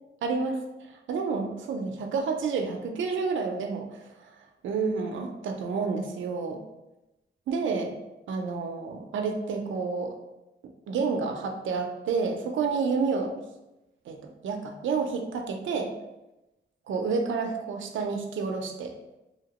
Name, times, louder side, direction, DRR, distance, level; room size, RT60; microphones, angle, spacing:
voice 1, 0.2-0.6 0.9-4.3 4.6-6.6 7.5-7.9 8.3-10.2 10.9-13.3 14.1-14.2 14.4-15.9 16.9-18.9, right 4 dB, 80° right, 4 dB, 0.5 m, -29 dB
2.8 x 2.8 x 2.9 m, 0.96 s
wide cardioid pair, 130°, 20 cm